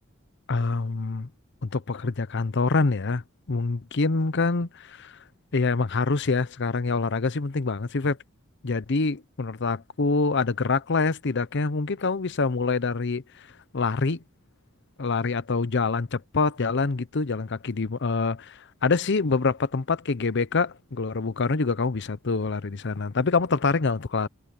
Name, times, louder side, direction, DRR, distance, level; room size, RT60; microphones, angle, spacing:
voice 1, 0.5-1.3 1.6-3.2 3.5-5.2 5.5-8.2 8.6-13.5 13.7-14.2 15.0-24.3, left 4 dB, 60° left, 0.8 m, -25 dB
head